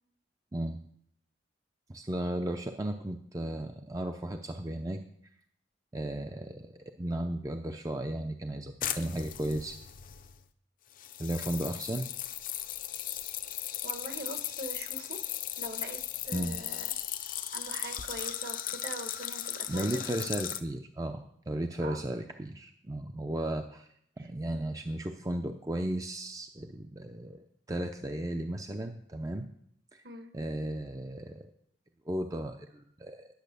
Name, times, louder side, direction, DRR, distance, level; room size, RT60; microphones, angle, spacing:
voice 1, 1.9-5.0 5.9-6.7 7.0-9.8 11.2-12.1 16.3-16.5 19.7-23.9 24.2-29.5 29.9-30.0 30.3-31.5 32.1-33.3, right 1 dB, 20° right, 5 dB, 0.5 m, -35 dB
sound 1, 8.8-10.4 11.0-20.6, left 11 dB, 50° left, 0.6 m, -37 dB
voice 2, 13.8-15.2 15.6-16.0 16.3-16.8 17.5-20.3 21.8-22.0 24.2-24.3 30.0-30.3, right 2 dB, 55° right, 6 dB, 1.3 m, -42 dB
10.5 x 6.9 x 6.7 m, 0.67 s
head